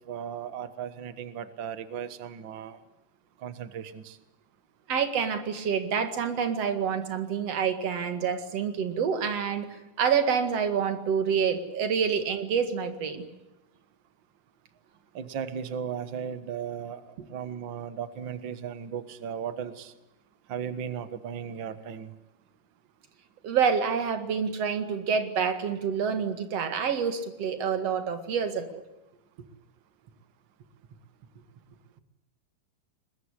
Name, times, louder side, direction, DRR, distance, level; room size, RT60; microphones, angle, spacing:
voice 1, 0.0-2.8 3.4-4.2 15.1-19.9 20.5-22.1, right 8 dB, 85° right, 12 dB, 1.0 m, -36 dB
voice 2, 4.9-9.7 10.0-13.2 23.4-28.8, right 6 dB, 50° right, 8 dB, 2.6 m, -27 dB
23.5 x 20.5 x 9.9 m, 0.96 s
omnidirectional pair, 4.4 m